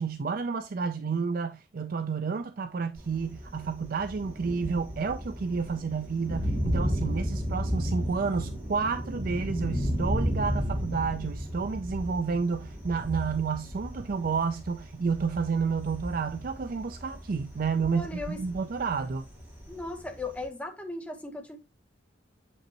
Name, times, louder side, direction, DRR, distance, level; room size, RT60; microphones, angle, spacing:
voice 1, 0.0-19.3, right 5 dB, 50° right, 0.4 m, -30 dB
Thunder, 2.9-20.5, equal, 10° right, 2.7 m, -34 dB
voice 2, 17.8-18.4 19.7-21.6, left 2 dB, 5° left, 1.1 m, -37 dB
7.1 x 5.3 x 2.9 m
head